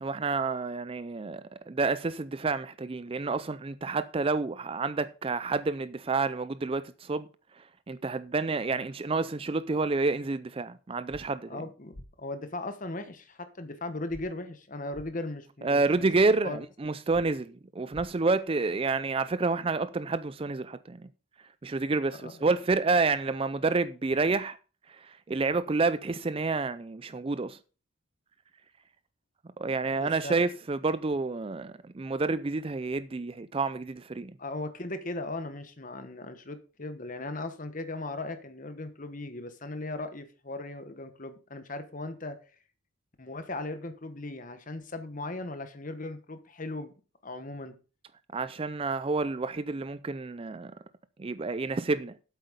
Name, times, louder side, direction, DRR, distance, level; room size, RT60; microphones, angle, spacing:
voice 1, 0.0-7.3 7.9-11.6 15.6-21.1 21.6-24.6 24.9-27.6 29.6-34.3 48.3-50.7 51.2-52.1, right 3 dB, 25° right, 0.4 m, -29 dB
sound 1, 11.1-11.2 11.9-12.1 14.1-14.2 14.9-15.1 17.1-17.2 17.9-18.1, left 1 dB, 60° left, 1.6 m, -46 dB
voice 2, 11.5-16.1 16.4-16.6 22.2-22.4 30.0-30.4 34.4-42.4 43.2-46.9 47.2-47.7, left 2 dB, 40° left, 1.2 m, -38 dB
8.4 x 7.9 x 5.1 m
head